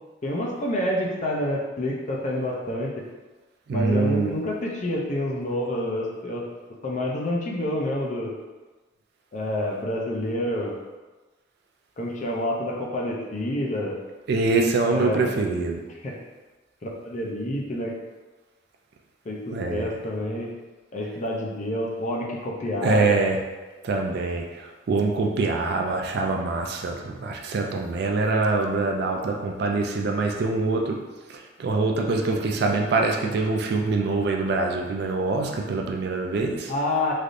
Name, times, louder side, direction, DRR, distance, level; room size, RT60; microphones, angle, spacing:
voice 1, 0.2-2.9 3.7-6.4 6.8-8.3 9.3-10.8 12.0-14.0 14.9-15.3 15.9-16.2 16.8-18.0 19.3-20.5 20.9-23.2 36.7-37.1, left 1 dB, 40° left, -2 dB, 0.5 m, -28 dB
voice 2, 3.7-4.3 14.3-15.8 19.5-19.9 22.8-23.4 23.8-24.4 24.9-31.0 31.6-36.7, right 3 dB, 55° right, 2 dB, 0.3 m, -24 dB
3.2 x 2.6 x 2.5 m, 1.2 s
head